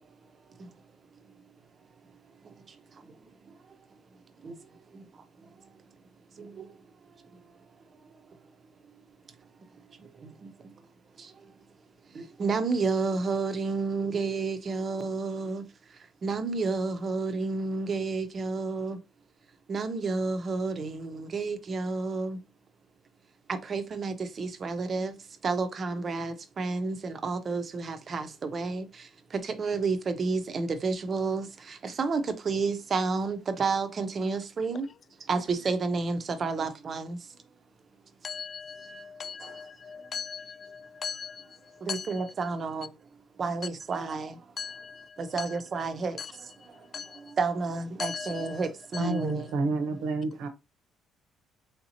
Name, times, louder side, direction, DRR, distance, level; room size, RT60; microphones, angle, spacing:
voice 1, 2.4-3.6 4.4-5.1 5.4-5.7 6.3-6.8 8.3-8.4 9.7-10.7 11.2-11.5 12.1-19.0 19.7-22.4 23.5-34.9 35.2-37.4 38.8-39.1 39.4-39.6 41.8-42.9 43.4-44.4 45.2-49.5, right 4 dB, 35° right, 0.6 m, -31 dB
voice 2, 38.2-42.2 44.6-45.6 46.2-46.3 46.9-47.4 48.0-48.7 48.9-49.4, left 6 dB, 40° left, 0.3 m, -39 dB
voice 3, 49.0-50.5, right 3 dB, 85° right, 0.8 m, -29 dB
3.5 x 2.8 x 2.8 m
cardioid pair, 125°, 0 cm